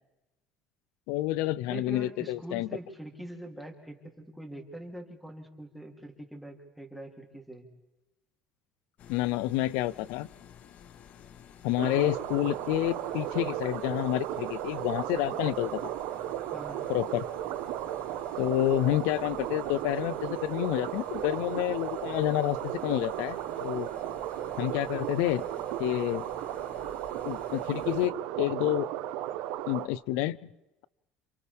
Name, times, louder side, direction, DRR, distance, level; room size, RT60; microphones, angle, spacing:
voice 1, 1.1-2.7 9.1-10.3 11.6-15.8 16.9-17.2 18.4-23.9 24.6-25.4 25.8-26.3 27.2-28.9 29.7-30.5, left 15 dB, 80° left, 19 dB, 0.7 m, -29 dB
voice 2, 1.7-7.7 16.5-16.9, right 1 dB, ahead, 0 dB, 3.2 m, -43 dB
sound 1, 9.0-28.1, left 9 dB, 50° left, 1.1 m, -52 dB
sound 2, 11.8-29.9, right 13 dB, 80° right, 1.2 m, -35 dB
29.5 x 27.0 x 3.6 m, 0.99 s
cardioid pair, 130°, 3 cm